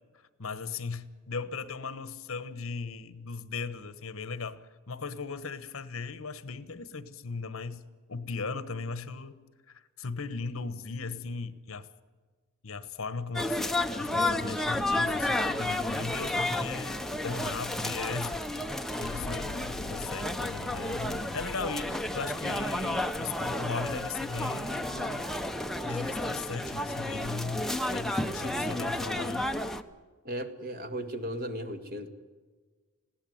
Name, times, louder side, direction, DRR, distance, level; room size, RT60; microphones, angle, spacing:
voice 1, 0.4-7.8 8.1-9.4 9.7-11.9 12.6-13.6 14.0-18.3 19.0-25.3 25.8-29.5, left 4 dB, 65° left, 14 dB, 1.2 m, -38 dB
sound 1, 13.3-29.8, left 1 dB, ahead, 0.8 m, -32 dB
Explosion, 19.0-24.2, left 4 dB, 90° left, 0.6 m, -45 dB
voice 2, 30.2-32.1, equal, 45° right, 8 dB, 2.0 m, -36 dB
21.0 x 16.5 x 9.3 m, 1.4 s
head